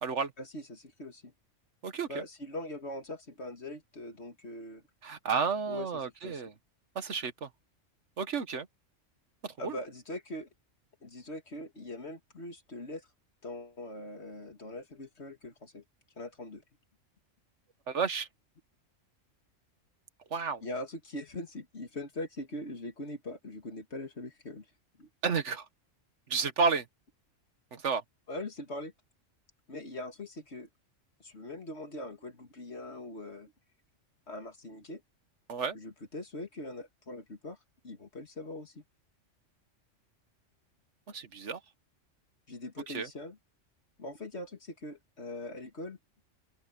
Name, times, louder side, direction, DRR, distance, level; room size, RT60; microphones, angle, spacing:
voice 1, 0.4-1.3 2.1-4.8 5.7-6.4 9.6-10.5 11.0-13.1 13.4-15.8 16.2-16.6 20.6-24.7 25.0-25.1 28.3-28.9 29.7-30.7 31.2-33.5 34.3-35.0 35.7-37.6 37.8-38.8 42.5-43.4 44.0-46.0, left 1 dB, 55° left, 2.6 m, -42 dB
voice 2, 1.8-2.2 5.0-6.5 6.9-7.5 8.2-8.7 9.4-9.8 17.9-18.3 20.3-20.6 25.2-25.6 26.3-26.8 27.7-28.0 35.5-35.8 41.1-41.6 42.9-43.1, right 5 dB, 65° right, 1.6 m, -31 dB
open air
omnidirectional pair, 1.3 m